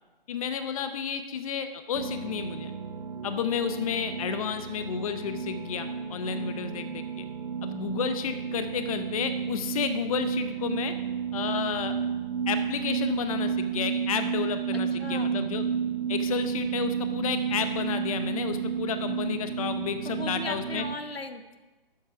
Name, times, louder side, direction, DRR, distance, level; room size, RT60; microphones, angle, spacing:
voice 1, 0.3-2.7 3.2-7.3 7.6-10.9 11.3-12.0 12.5-15.6 16.1-20.8, left 7 dB, 35° left, 9 dB, 0.7 m, -31 dB
sound 1, 1.9-21.0, right 7 dB, 50° right, 1.0 m, -32 dB
voice 2, 14.7-15.3 20.0-21.6, left 3 dB, 90° left, 9 dB, 1.1 m, -38 dB
12.0 x 7.6 x 4.7 m, 1.2 s
figure-of-eight pair, 140°, 29 cm